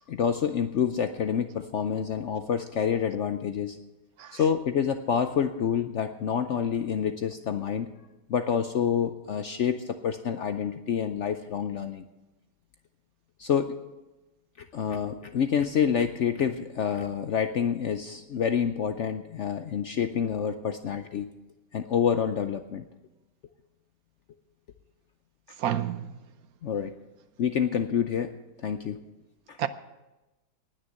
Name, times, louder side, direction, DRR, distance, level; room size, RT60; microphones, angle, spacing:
voice 1, 0.1-3.8 4.3-7.9 8.3-12.0 13.4-13.8 14.6-21.3 21.7-22.8 26.6-26.9 27.4-28.3 28.6-29.0 29.5-29.6, left 7 dB, 65° left, 0.7 m, -28 dB
voice 2, 25.6-26.2 29.6-29.7, right 10 dB, 70° right, 1.0 m, -29 dB
19.0 x 6.6 x 7.8 m
omnidirectional pair, 1.8 m